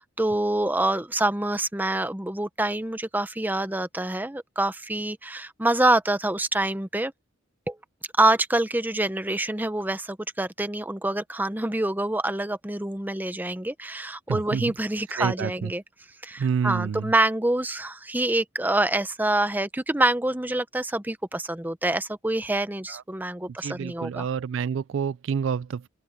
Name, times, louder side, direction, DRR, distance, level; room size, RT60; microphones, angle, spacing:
voice 1, 0.0-7.1 7.7-7.8 8.2-15.8 16.2-24.3, right 1 dB, 10° right, 0.8 m, -26 dB
voice 2, 14.3-14.7 15.2-15.7 16.4-17.1 22.9-23.0 23.6-25.9, right 6 dB, 65° right, 0.3 m, -28 dB
open air
head